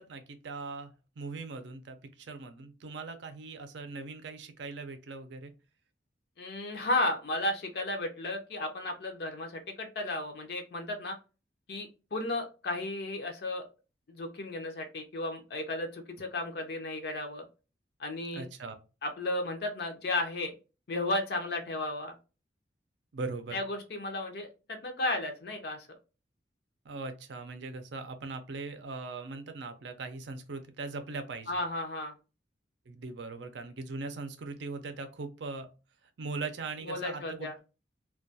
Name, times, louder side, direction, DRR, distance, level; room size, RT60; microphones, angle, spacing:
voice 1, 0.0-5.5 18.3-18.8 23.1-23.6 26.9-31.6 32.9-35.7 36.2-37.5, right 3 dB, 75° right, 8 dB, 0.5 m, -40 dB
voice 2, 6.4-11.1 11.7-13.6 14.1-17.4 18.0-18.4 19.0-20.5 20.9-22.1 23.5-25.9 31.5-32.1 36.8-37.5, left 2 dB, 55° left, 4 dB, 0.5 m, -34 dB
2.2 x 2.2 x 2.6 m, 0.32 s
head